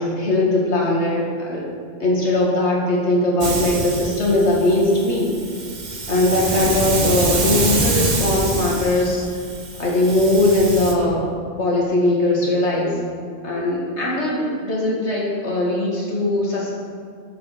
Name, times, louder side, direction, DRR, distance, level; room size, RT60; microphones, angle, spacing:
voice 1, 0.0-1.6 2.0-5.3 6.1-9.3 9.8-11.3 11.6-13.0 13.4-16.7, left 2 dB, 70° left, -4 dB, 1.8 m, -20 dB
Hiss, 3.4-10.9, right 3 dB, 40° right, 1.1 m, -25 dB
10.0 x 5.2 x 6.9 m, 2.2 s
omnidirectional pair, 1.2 m